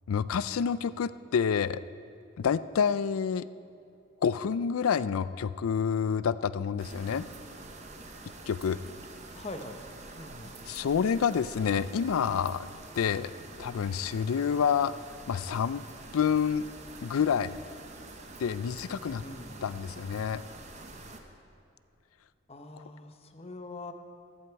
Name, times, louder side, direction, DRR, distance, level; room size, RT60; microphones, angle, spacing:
voice 1, 0.1-1.8 2.4-3.5 4.2-7.3 8.5-8.8 10.7-12.7 13.0-13.3 13.6-14.9 15.3-15.8 16.1-16.6 17.0-17.5 18.4-19.2 19.6-20.4, left 7 dB, 80° left, 16 dB, 0.4 m, -28 dB
sound 1, 6.8-21.2, right 2 dB, 35° right, 0.9 m, -47 dB
voice 2, 9.3-9.8 10.2-10.6 19.2-19.7 22.5-23.9, left 2 dB, 30° left, 6 dB, 0.8 m, -43 dB
14.0 x 14.0 x 4.6 m, 2.5 s
head